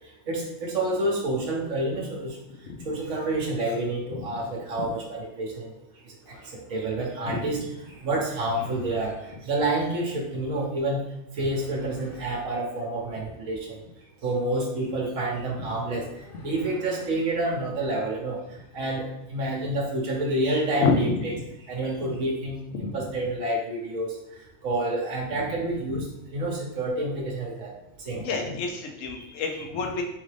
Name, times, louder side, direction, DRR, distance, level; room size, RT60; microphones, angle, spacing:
voice 1, 0.3-2.4 2.8-5.7 6.3-7.7 8.0-11.0 11.3-13.8 14.2-18.4 18.7-21.3 21.7-24.1 24.6-26.1 26.3-27.7 28.1-28.5 29.2-29.4, right 1 dB, 75° right, -1 dB, 1.1 m, -28 dB
sound 1, 6.2-6.6 7.9-9.5 11.4-12.6 15.3-17.1, left 1 dB, 50° left, 0.8 m, -45 dB
voice 2, 20.8-21.1 22.0-22.1 22.8-23.0 28.1-30.0, left 4 dB, 75° left, 3 dB, 1.1 m, -28 dB
3.7 x 3.6 x 3.3 m, 0.90 s
omnidirectional pair, 1.4 m